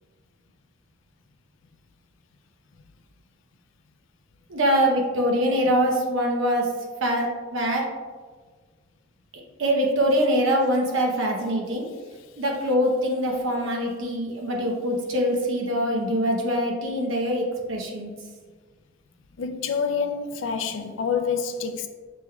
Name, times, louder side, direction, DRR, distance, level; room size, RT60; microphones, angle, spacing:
voice 1, 4.5-6.7 7.0-7.9 9.6-11.9 12.4-18.1, equal, 80° right, 0.9 m, -23 dB
voice 2, 19.4-21.9, left 6 dB, 75° left, 0.4 m, -27 dB
6.0 x 3.3 x 2.3 m
head